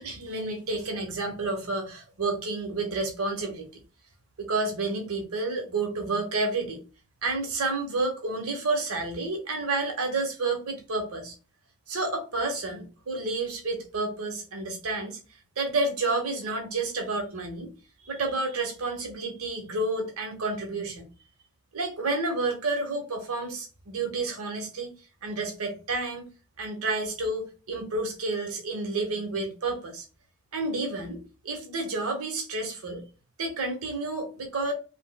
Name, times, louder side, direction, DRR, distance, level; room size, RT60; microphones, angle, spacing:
voice 1, 0.0-3.7 4.4-6.8 7.2-11.3 11.9-15.2 15.6-17.7 18.0-21.1 21.7-24.9 25.2-26.2 26.6-30.0 30.5-33.0 33.4-34.7, right 3 dB, 70° right, 1.0 m, -30 dB
4.6 x 2.0 x 2.2 m
head